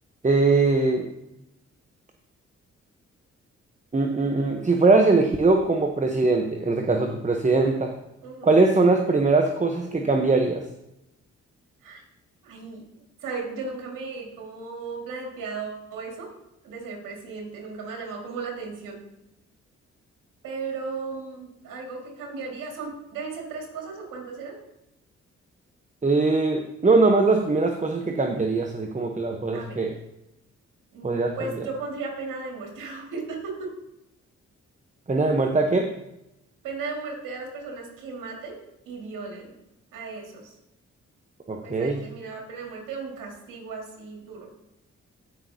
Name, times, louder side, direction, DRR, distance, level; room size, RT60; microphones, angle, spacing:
voice 1, 0.2-1.1 3.9-7.9 8.4-10.6 26.0-30.0 31.0-31.5 35.1-35.9 41.5-42.0, right 3 dB, 25° right, 4 dB, 1.0 m, -21 dB
voice 2, 8.2-8.6 11.8-12.0 12.4-16.3 16.6-19.0 20.4-24.6 29.5-29.8 30.9-33.7 36.6-38.6 38.9-39.5 39.9-40.5 41.6-44.5, right 4 dB, 90° right, 0 dB, 2.2 m, -36 dB
15.0 x 6.0 x 2.8 m, 0.88 s
supercardioid pair, 50°, 31 cm